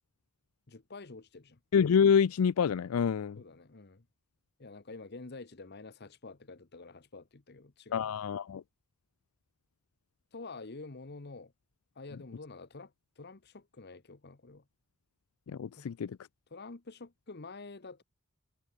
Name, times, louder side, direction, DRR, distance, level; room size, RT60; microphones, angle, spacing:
voice 1, 0.7-1.6 3.4-4.1 4.6-8.1 10.3-11.5 12.0-14.6 15.8-15.9 16.5-18.0, left 3 dB, 50° left, 1.0 m, -48 dB
voice 2, 1.7-3.4 7.9-8.6 15.5-16.2, left 7 dB, 75° left, 0.4 m, -27 dB
head